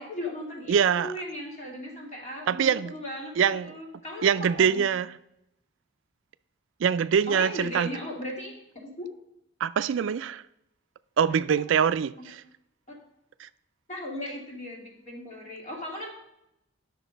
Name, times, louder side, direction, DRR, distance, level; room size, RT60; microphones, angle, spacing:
voice 1, 0.0-3.3 3.6-4.8 7.3-8.5 8.8-9.1 12.2-12.3 13.9-16.1, left 1 dB, 35° left, 2.6 m, -37 dB
voice 2, 0.7-1.2 2.5-2.9 3.4-3.8 4.2-5.1 6.8-7.9 9.6-10.4 11.2-12.4 13.4-13.5, right 7 dB, 70° right, 0.3 m, -24 dB
10.0 x 6.5 x 5.1 m
head